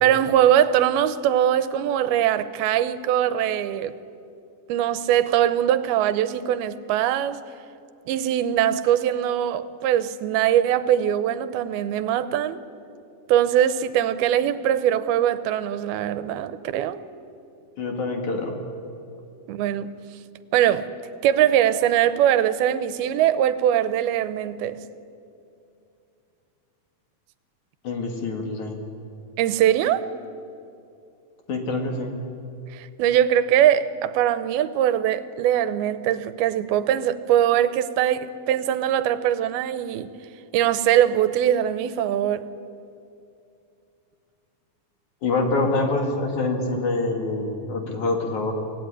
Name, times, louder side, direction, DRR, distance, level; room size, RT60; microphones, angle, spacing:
voice 1, 0.0-3.9 4.7-7.4 8.1-12.6 13.3-17.0 19.5-19.9 20.5-20.9 21.2-24.8 29.4-30.1 32.7-40.1 40.5-42.5, right 11 dB, 85° right, 2.7 m, -21 dB
voice 2, 17.8-18.6 27.8-28.8 31.5-32.1 45.2-48.5, left 3 dB, 55° left, 3.4 m, -25 dB
25.0 x 17.5 x 9.8 m
omnidirectional pair, 4.3 m